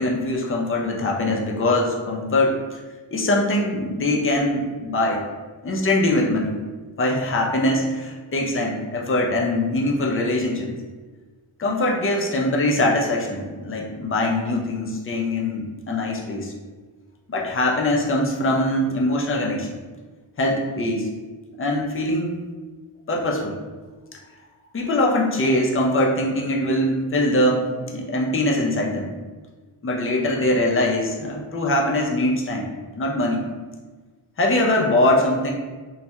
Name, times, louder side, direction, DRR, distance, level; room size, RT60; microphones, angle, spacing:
voice 1, 0.0-2.8 3.1-5.2 5.6-6.6 7.0-10.7 11.6-16.5 17.3-19.7 20.4-21.1 21.6-22.4 23.1-23.6 24.7-29.1 29.8-33.5 34.4-35.5, left 1 dB, 30° left, 0 dB, 0.4 m, -22 dB
2.3 x 2.1 x 2.8 m, 1.3 s
wide cardioid pair, 80°, 49 cm